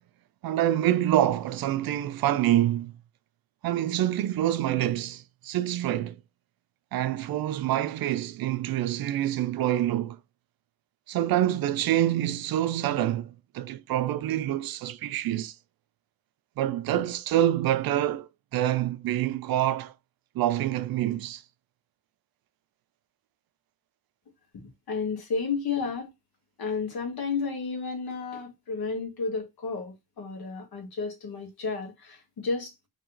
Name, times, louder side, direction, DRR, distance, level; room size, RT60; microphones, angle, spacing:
voice 1, 0.4-2.9 3.6-6.2 6.9-10.2 11.1-15.5 16.6-19.9 20.3-21.4, right 12 dB, 70° right, 0.5 m, -26 dB
voice 2, 24.9-26.1 26.6-32.7, left 4 dB, 75° left, 1.6 m, -32 dB
3.3 x 2.9 x 3.8 m
cardioid pair, 75°, 37 cm